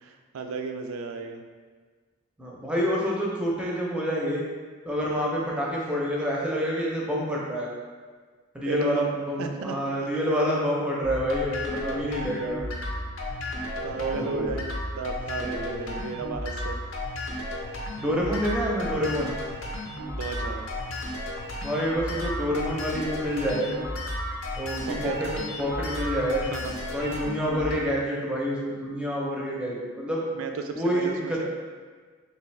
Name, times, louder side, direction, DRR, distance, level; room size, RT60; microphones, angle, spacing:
voice 1, 0.0-1.4 8.6-9.8 10.1-10.2 11.8-12.5 13.8-14.7 15.0-16.8 20.1-20.7 24.9-25.2 26.5-26.7 27.5-27.8 29.6-29.7 30.3-31.5, right 4 dB, 75° right, 5 dB, 0.3 m, -35 dB
voice 2, 2.4-4.4 4.9-7.7 8.5-12.6 13.9-14.6 15.4-16.0 18.0-19.3 21.6-23.7 24.6-25.3 25.6-26.4 26.9-30.2 30.8-31.5, equal, 5° right, -4 dB, 0.5 m, -28 dB
sound 1, 11.0-27.8, left 1 dB, 70° left, 0.6 m, -33 dB
3.4 x 2.9 x 3.2 m, 1.5 s
head